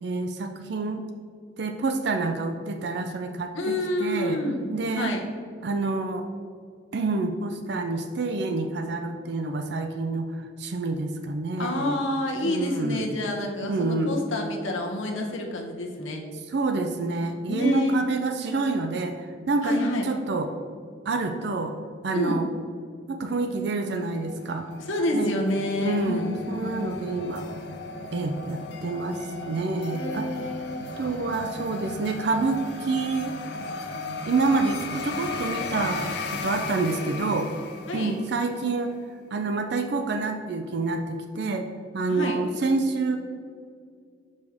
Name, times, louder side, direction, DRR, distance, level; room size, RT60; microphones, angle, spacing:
voice 1, 0.0-1.0 1.6-4.4 4.7-5.1 5.6-6.3 6.9-12.0 12.4-13.1 13.4-14.2 16.5-20.5 21.1-21.7 22.0-22.5 23.1-24.7 25.1-25.4 25.8-27.5 28.1-30.3 31.0-33.4 34.3-37.5 37.9-38.9 39.3-43.2, right 3 dB, 55° right, 6 dB, 0.4 m, -28 dB
voice 2, 3.5-5.2 11.6-16.2 17.5-18.1 19.6-20.1 22.1-22.4 24.9-27.0 29.9-30.8 37.9-38.2 42.1-42.4, left 1 dB, 75° left, 1 dB, 1.0 m, -28 dB
sound 1, 23.8-38.5, left 3 dB, 55° left, 0.6 m, -36 dB
6.4 x 5.2 x 3.5 m, 2.1 s
head